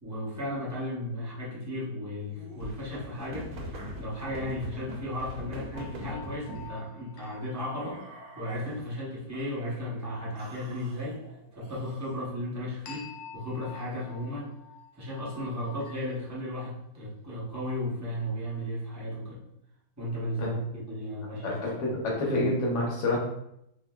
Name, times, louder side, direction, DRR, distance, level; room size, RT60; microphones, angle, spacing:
voice 1, 0.0-3.5 4.0-8.0 8.3-11.2 11.5-13.1 13.3-14.5 15.0-19.4 20.0-21.6 21.9-22.0, left 1 dB, 15° right, -7 dB, 0.6 m, -35 dB
sound 1, 2.3-6.7 7.6-8.9 9.3-9.9 10.4-12.2, equal, 65° right, 0.9 m, -43 dB
sound 2, 5.7-8.6 12.9-16.4, left 7 dB, 85° left, 1.1 m, -48 dB
voice 2, 21.4-23.2, left 1 dB, 55° left, -3 dB, 1.1 m, -28 dB
3.6 x 2.6 x 2.2 m, 0.80 s
omnidirectional pair, 1.6 m